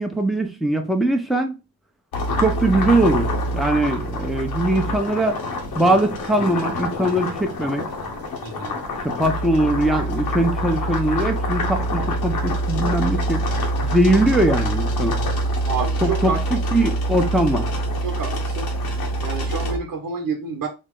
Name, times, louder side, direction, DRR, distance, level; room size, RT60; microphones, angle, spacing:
voice 1, 0.0-1.5 2.4-5.4 5.7-7.8 9.2-13.4 13.8-15.2 16.0-17.7, right 1 dB, ahead, 0.7 m, -21 dB
sound 1, 2.1-19.8, right 1 dB, 80° left, 1.1 m, -25 dB
voice 2, 8.4-8.8 15.7-16.4 18.0-18.7 19.2-20.7, right 5 dB, 65° right, 1.0 m, -28 dB
4.0 x 2.1 x 3.7 m
cardioid pair, 55°, 36 cm